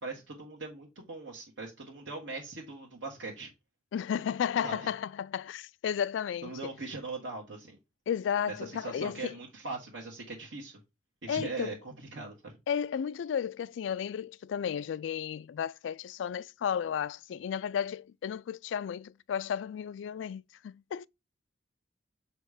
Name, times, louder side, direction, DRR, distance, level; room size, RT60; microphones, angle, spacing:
voice 1, 0.0-3.5 4.6-4.9 6.4-7.8 8.5-10.8 11.2-12.6, right 3 dB, 85° right, 1.5 m, -40 dB
voice 2, 3.9-6.5 8.1-9.3 11.3-11.8 12.7-21.1, left 8 dB, 90° left, 0.3 m, -33 dB
7.0 x 3.3 x 4.9 m
head